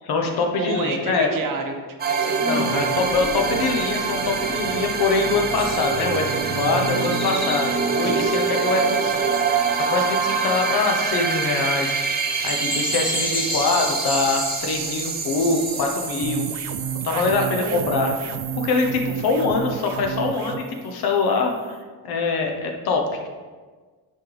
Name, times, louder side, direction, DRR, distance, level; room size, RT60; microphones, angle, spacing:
voice 1, 0.1-1.4 2.5-9.6 9.9-11.9 12.4-16.5 17.0-21.8 22.0-23.3, left 4 dB, 60° left, 2 dB, 1.1 m, -24 dB
voice 2, 0.6-2.9 8.0-8.3 17.1-17.9, right 3 dB, 50° right, 3 dB, 1.0 m, -30 dB
sound 1, 2.0-20.5, right 5 dB, 25° right, 0.5 m, -25 dB
sound 2, 5.6-16.1, left 1 dB, 10° left, 0.8 m, -35 dB
sound 3, 16.2-20.6, right 10 dB, 75° right, 0.5 m, -32 dB
10.5 x 4.4 x 3.4 m, 1.4 s
cardioid pair, 165°, 41 cm